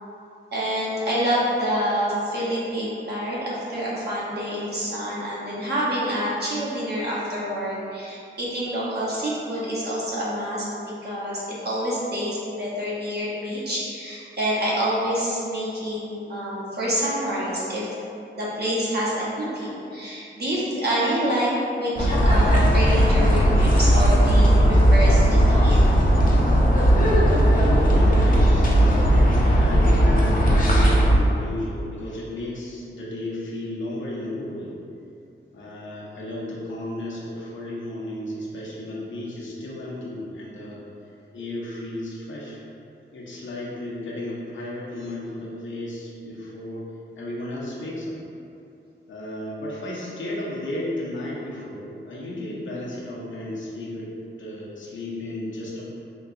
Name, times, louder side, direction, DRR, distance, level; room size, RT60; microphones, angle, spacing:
voice 1, 0.5-10.7 11.0-17.9 18.4-21.5 21.8-25.9, equal, 55° right, -7 dB, 0.9 m, -27 dB
sound 1, 22.0-31.1, equal, 45° left, 0.5 m, -17 dB
voice 2, 25.3-25.6 27.1-34.7 35.5-40.8 41.3-42.6 43.1-46.9 47.2-48.2 49.1-54.1 54.4-55.9, left 1 dB, 75° left, -5 dB, 0.7 m, -33 dB
3.8 x 2.9 x 2.6 m, 2.6 s
wide cardioid pair, 130°, 20 cm